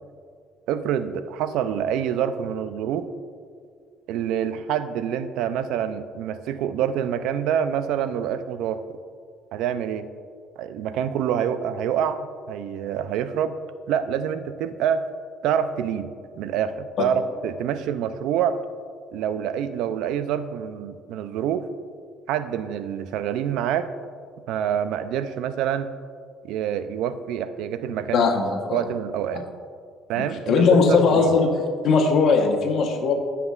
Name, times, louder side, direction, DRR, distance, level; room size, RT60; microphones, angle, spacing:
voice 1, 0.7-3.1 4.1-8.8 9.5-10.1 10.6-13.6 13.9-15.0 15.4-18.6 19.1-21.7 22.3-23.9 24.5-25.9 26.4-28.3 28.7-29.4 30.1-31.3, right 9 dB, 80° right, 11 dB, 0.4 m, -26 dB
voice 2, 28.1-28.8 30.2-31.6 31.8-33.1, left 4 dB, 60° left, 3 dB, 1.0 m, -19 dB
13.0 x 5.8 x 2.4 m, 2.1 s
cardioid pair, 120°, 0 cm